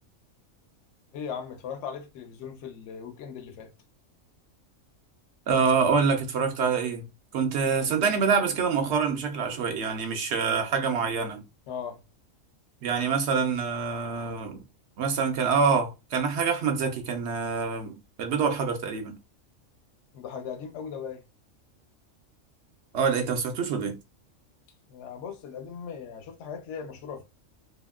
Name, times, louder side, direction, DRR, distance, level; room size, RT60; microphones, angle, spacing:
voice 1, 1.1-3.7 11.7-12.0 20.1-21.2 24.9-27.2, left 7 dB, 65° left, 0.9 m, -38 dB
voice 2, 5.5-7.0 7.3-11.4 12.8-14.6 15.0-19.2 22.9-24.0, right 5 dB, 65° right, 0.7 m, -26 dB
2.8 x 2.6 x 2.2 m
omnidirectional pair, 1.4 m